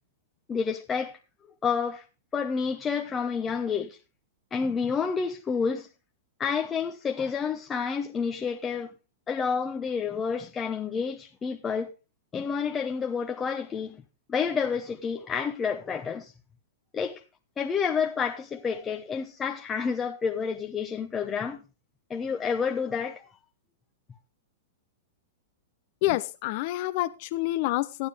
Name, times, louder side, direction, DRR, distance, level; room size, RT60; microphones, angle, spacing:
voice 1, 0.5-1.2 1.6-2.0 2.3-4.0 4.5-5.9 6.4-8.9 9.3-11.9 12.3-14.0 14.3-16.3 16.9-17.2 17.6-21.6 22.1-23.3, left 6 dB, 20° left, 0.8 m, -29 dB
voice 2, 26.0-28.1, left 17 dB, 50° left, 0.5 m, -28 dB
13.0 x 9.7 x 3.4 m
hypercardioid pair, 125°, 0 cm